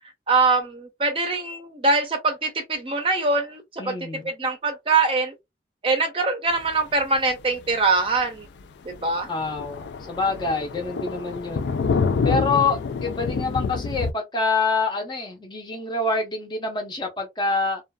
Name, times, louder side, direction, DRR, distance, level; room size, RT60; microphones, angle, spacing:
voice 1, 0.3-5.3 5.8-8.5 8.8-9.3, right 3 dB, 30° right, 0.5 m, -23 dB
voice 2, 3.8-4.3 9.3-11.7 12.2-17.8, left 3 dB, 25° left, 0.6 m, -26 dB
Thunder, 7.1-7.3 7.7-7.8 8.2-8.3 8.6-8.7 8.9-14.1, left 5 dB, 80° left, 0.3 m, -27 dB
2.4 x 2.2 x 2.2 m
head